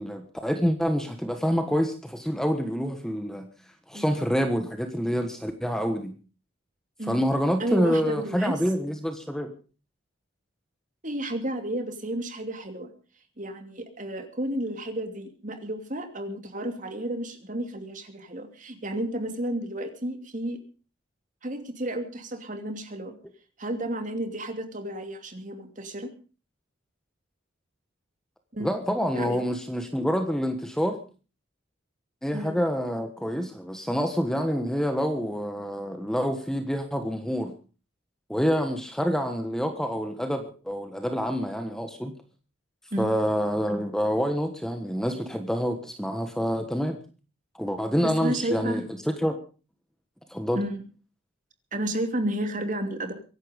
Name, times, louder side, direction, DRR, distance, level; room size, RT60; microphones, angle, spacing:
voice 1, 0.0-3.5 3.9-6.1 7.1-9.5 28.6-31.0 32.2-37.5 38.3-42.1 43.0-47.0 47.5-49.4 50.3-50.6, equal, 5° left, 7 dB, 1.4 m, -27 dB
voice 2, 7.6-8.6 11.0-12.9 13.4-20.6 21.4-23.1 23.6-26.1 28.5-28.8 29.1-29.4 32.3-32.6 42.9-43.1 48.0-48.9 50.5-50.8 51.7-53.1, right 1 dB, 40° right, 7 dB, 2.7 m, -32 dB
24.0 x 11.5 x 5.2 m, 0.37 s
head